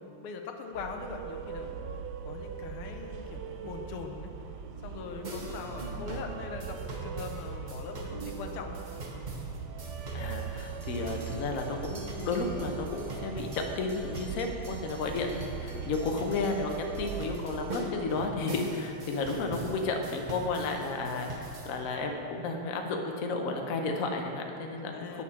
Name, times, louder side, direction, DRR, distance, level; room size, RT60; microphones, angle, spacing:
voice 1, 0.0-1.7 2.2-4.3 4.8-8.8 24.9-25.2, left 5 dB, 85° left, 4 dB, 1.7 m, -41 dB
sound 1, 0.7-17.7, right 6 dB, 75° right, 1.0 m, -40 dB
sound 2, 5.2-21.8, right 1 dB, 50° right, 0.5 m, -42 dB
voice 2, 10.1-24.9 25.1-25.2, left 3 dB, 55° left, 3 dB, 1.0 m, -32 dB
8.5 x 7.2 x 5.8 m, 2.8 s
omnidirectional pair, 2.3 m